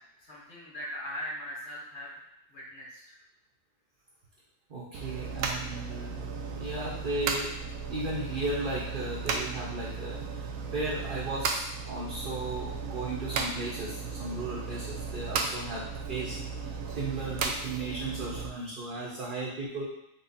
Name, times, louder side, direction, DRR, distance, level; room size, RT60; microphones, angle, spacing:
voice 1, 0.2-2.1 2.5-3.1, equal, 60° left, -5 dB, 1.5 m, -40 dB
voice 2, 4.7-7.5 7.9-10.5 10.7-15.8 16.1-16.4 16.9-19.8, right 2 dB, 45° right, -6 dB, 1.1 m, -35 dB
sound 1, 4.9-18.5, right 4 dB, 85° right, 1.0 m, -35 dB
5.4 x 2.4 x 4.0 m, 0.84 s
omnidirectional pair, 1.4 m